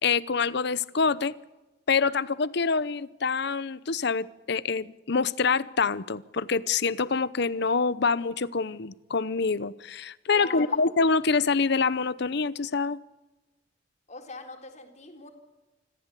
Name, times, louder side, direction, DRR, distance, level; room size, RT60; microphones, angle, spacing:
voice 1, 0.0-1.3 1.9-13.0, left 4 dB, 60° left, 18 dB, 0.8 m, -26 dB
voice 2, 10.3-10.9 14.1-15.3, left 3 dB, 40° left, 3 dB, 3.8 m, -42 dB
26.0 x 14.5 x 8.3 m, 1.1 s
head